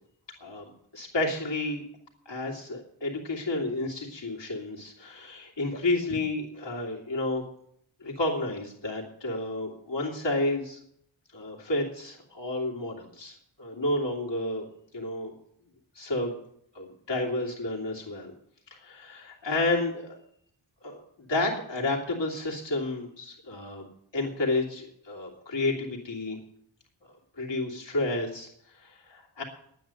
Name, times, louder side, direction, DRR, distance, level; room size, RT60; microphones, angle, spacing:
voice 1, 0.4-1.8 2.2-7.4 8.0-10.8 11.3-14.6 14.9-15.3 15.9-16.3 16.7-18.3 18.7-20.2 20.8-23.9 24.1-26.4 27.0-29.4, left 2 dB, 60° left, -3 dB, 2.9 m, -31 dB
10.5 x 9.2 x 7.7 m, 0.70 s
wide cardioid pair, 95°, 49 cm